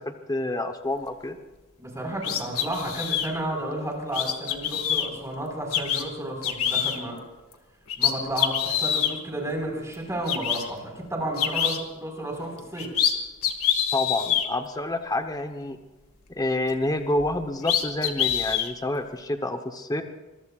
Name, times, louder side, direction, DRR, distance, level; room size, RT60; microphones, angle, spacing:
voice 1, 0.1-1.4 13.9-15.8 16.4-20.0, left 2 dB, 15° left, 6 dB, 0.9 m, -28 dB
voice 2, 1.8-7.2 8.0-12.9, right 1 dB, 15° right, 0 dB, 4.6 m, -32 dB
sound 1, 2.2-3.3 4.1-5.1 5.7-6.0 6.4-7.0 7.5-7.6 7.9-9.1 9.9-10.0 10.3-10.6 11.4-11.8 12.6-13.1 13.4-14.5 17.2-17.3 17.6-18.7, left 9 dB, 75° left, 1.8 m, -25 dB
25.0 x 22.5 x 2.4 m, 1.2 s
head